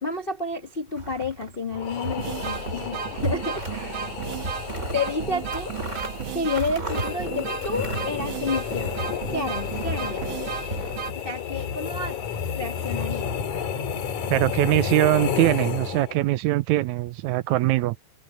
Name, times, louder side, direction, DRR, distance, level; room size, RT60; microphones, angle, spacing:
voice 1, 0.0-4.2 4.9-5.7 6.3-9.0 9.3-10.3 11.2-12.2 12.5-13.3, left 3 dB, 55° left, 0.5 m, -30 dB
sound 1, 0.9-1.6 2.0-2.8 3.1-3.8 4.2-9.2 9.5-10.8, right 1 dB, 20° right, 5.1 m, -35 dB
sound 2, 1.4-1.5 2.0-11.1, right 9 dB, 65° right, 1.3 m, -34 dB
sound 3, 1.7-16.3, left 7 dB, 75° left, 3.9 m, -32 dB
voice 2, 14.3-18.0, right 17 dB, 80° right, 1.9 m, -22 dB
omnidirectional pair, 3.5 m